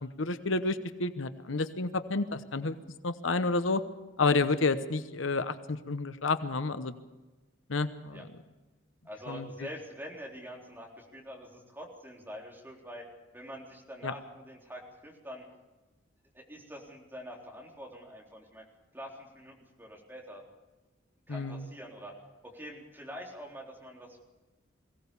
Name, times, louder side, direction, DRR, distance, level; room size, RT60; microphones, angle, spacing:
voice 1, 0.0-2.8 3.0-3.8 4.2-6.9 7.7-8.3 9.3-9.5 14.0-14.1 21.3-21.7, left 3 dB, 75° left, 11 dB, 1.0 m, -30 dB
voice 2, 9.0-13.0 13.3-15.4 16.3-18.6 18.9-20.5 21.3-22.1 22.4-24.2, equal, 10° right, -1 dB, 3.9 m, -45 dB
22.0 x 17.0 x 7.0 m, 1.1 s
head